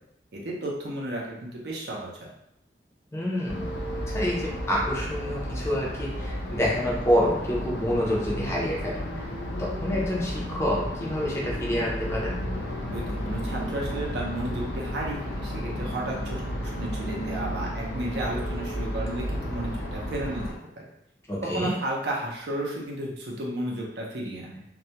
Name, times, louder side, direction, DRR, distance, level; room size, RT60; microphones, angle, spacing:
voice 1, 0.3-2.1 12.9-20.9 21.4-24.6, right 1 dB, 65° right, -3 dB, 0.6 m, -33 dB
voice 2, 3.1-3.7 4.1-9.2 9.6-12.4 21.3-21.7, equal, 15° left, -4 dB, 0.4 m, -27 dB
sound 1, 3.5-20.5, equal, 85° left, 0.5 m, -33 dB
2.2 x 2.1 x 2.8 m, 0.79 s
head